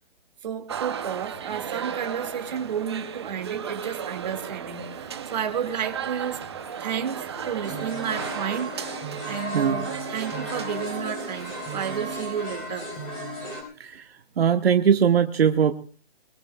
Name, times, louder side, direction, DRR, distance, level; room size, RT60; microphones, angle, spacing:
voice 1, 0.4-6.4 6.8-12.9, right 8 dB, 40° right, 5 dB, 2.3 m, -32 dB
sound 1, 0.7-7.9, left 3 dB, 35° left, 4.2 m, -49 dB
sound 2, 0.7-12.2, right 8 dB, 25° right, 0.7 m, -36 dB
sound 3, 7.6-13.6, equal, 20° left, 5.9 m, -34 dB
voice 2, 13.8-15.7, right 8 dB, 70° right, 6 dB, 1.2 m, -21 dB
23.0 x 22.5 x 2.4 m, 0.38 s
hypercardioid pair, 175°, 31 cm